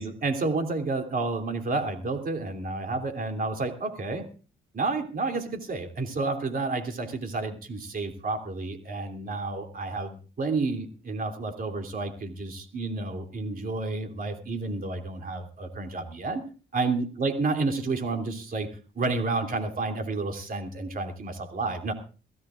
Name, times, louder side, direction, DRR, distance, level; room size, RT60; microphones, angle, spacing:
voice 1, 0.0-4.3 4.7-16.4 16.7-21.9, right 3 dB, 45° right, 5 dB, 3.1 m, -30 dB
22.5 x 15.5 x 2.5 m, 0.36 s
cardioid pair, 90°, 20 cm